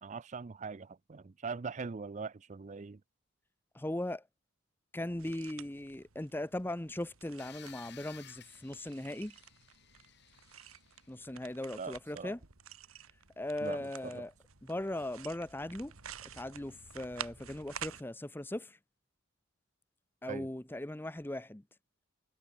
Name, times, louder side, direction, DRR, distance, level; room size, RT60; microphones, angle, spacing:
voice 1, 0.0-3.0 11.8-12.3 13.6-14.2 20.3-20.5, right 4 dB, 35° right, 0.5 m, -42 dB
voice 2, 3.7-4.2 4.9-9.3 11.1-12.4 13.4-14.3 14.6-15.9 16.3-18.8 20.2-21.6, left 1 dB, 10° left, 0.7 m, -39 dB
sound 1, 5.2-18.0, right 8 dB, 85° right, 2.5 m, -50 dB
sound 2, 7.4-11.2, left 10 dB, 55° left, 3.5 m, -56 dB
head